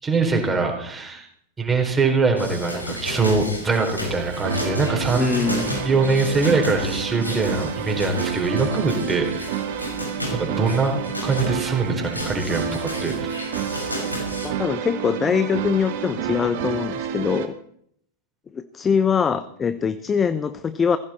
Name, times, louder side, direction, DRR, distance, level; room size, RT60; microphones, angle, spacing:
voice 1, 0.0-1.3 1.6-9.5 10.3-13.5, right 3 dB, 15° right, 2 dB, 4.1 m, -23 dB
sound 1, 2.4-14.5, left 1 dB, 85° left, 5.2 m, -33 dB
sound 2, 4.1-17.5, right 8 dB, 50° right, 2.2 m, -29 dB
voice 2, 5.1-5.8 14.4-17.5 18.5-21.0, left 6 dB, 20° left, 14 dB, 0.8 m, -23 dB
20.0 x 16.0 x 4.4 m, 0.68 s
figure-of-eight pair, 90°, 0 cm